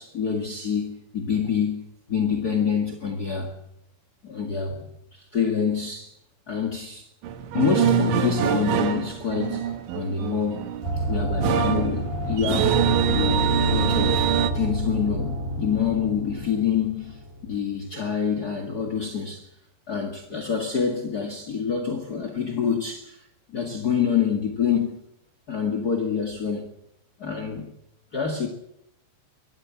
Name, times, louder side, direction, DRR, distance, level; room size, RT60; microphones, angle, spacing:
voice 1, 0.0-3.5 4.2-4.9 5.1-6.1 6.5-7.0 7.5-9.6 9.9-10.6 11.1-12.8 13.1-14.3 14.5-19.5 19.9-23.2 23.5-25.0 25.5-26.7 27.2-27.7 28.1-28.5, left 7 dB, 45° left, 1.3 m, -26 dB
sound 1, 7.2-14.5, right 8 dB, 85° right, 3.8 m, -24 dB
sound 2, 10.8-17.6, right 1 dB, 10° right, 7.8 m, -28 dB
23.0 x 13.5 x 8.5 m
omnidirectional pair, 5.1 m